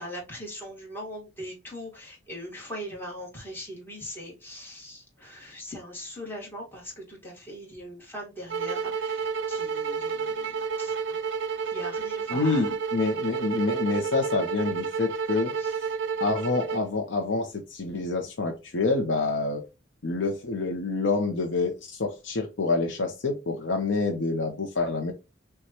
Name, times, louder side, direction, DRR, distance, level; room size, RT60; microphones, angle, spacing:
voice 1, 0.0-11.2 11.7-12.7 15.6-15.7, equal, 10° left, -2 dB, 1.5 m, -40 dB
sound 1, 8.5-16.9, right 5 dB, 65° right, 0.4 m, -30 dB
voice 2, 12.3-15.8 16.2-19.6 20.0-25.1, left 3 dB, 70° left, 3 dB, 0.7 m, -27 dB
6.1 x 2.3 x 2.8 m, 0.26 s
head